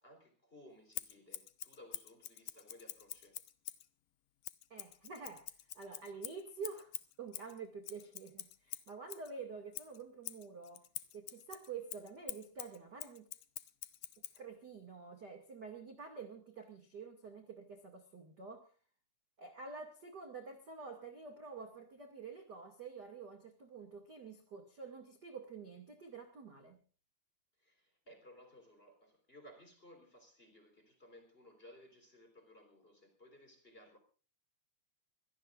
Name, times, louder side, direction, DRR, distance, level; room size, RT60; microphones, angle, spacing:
voice 1, 0.0-3.4 27.6-34.0, left 1 dB, 15° left, 3.6 m, -59 dB
Scissors, 0.9-3.9 4.4-9.3 9.7-14.4, left 14 dB, 90° left, 1.8 m, -47 dB
voice 2, 4.7-10.8 11.1-13.3 14.3-18.7 19.4-26.8, right 5 dB, 35° right, 1.7 m, -48 dB
24.5 x 17.5 x 2.5 m
omnidirectional pair, 5.2 m